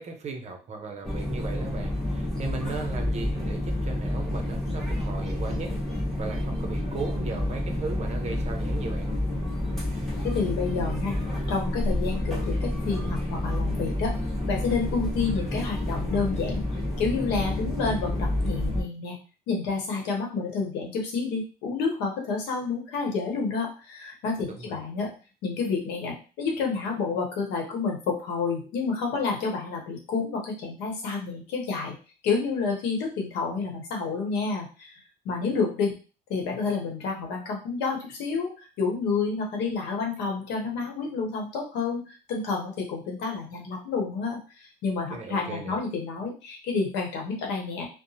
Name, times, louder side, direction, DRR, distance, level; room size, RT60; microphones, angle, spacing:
voice 1, 0.0-9.1 24.4-24.8 45.1-45.8, right 4 dB, 40° right, 4 dB, 0.6 m, -37 dB
sound 1, 1.0-18.8, left 1 dB, ahead, 1.1 m, -29 dB
voice 2, 10.2-11.2 11.5-14.1 14.5-16.6 17.0-19.2 19.5-25.1 25.4-32.0 32.2-35.0 35.2-35.9 36.3-47.9, left 4 dB, 90° left, 1 dB, 0.9 m, -29 dB
2.8 x 2.0 x 2.7 m, 0.35 s
cardioid pair, 110°, 17 cm